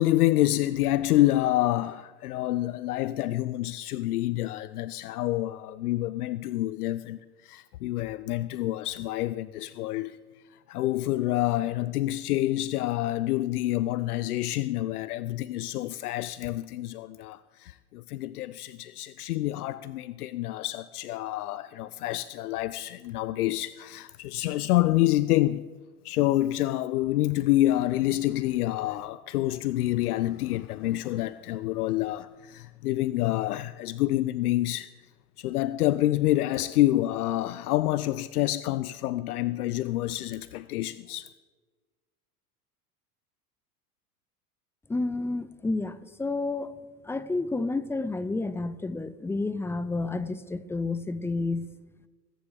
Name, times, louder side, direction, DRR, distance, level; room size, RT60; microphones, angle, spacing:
voice 1, 0.0-10.2 10.7-25.6 26.0-34.9 35.4-41.3, left 15 dB, 75° left, 0.5 m, -27 dB
voice 2, 44.9-46.7 47.0-51.7, left 3 dB, 5° left, 0.5 m, -30 dB
21.0 x 10.0 x 3.5 m
hypercardioid pair, 85°, 46 cm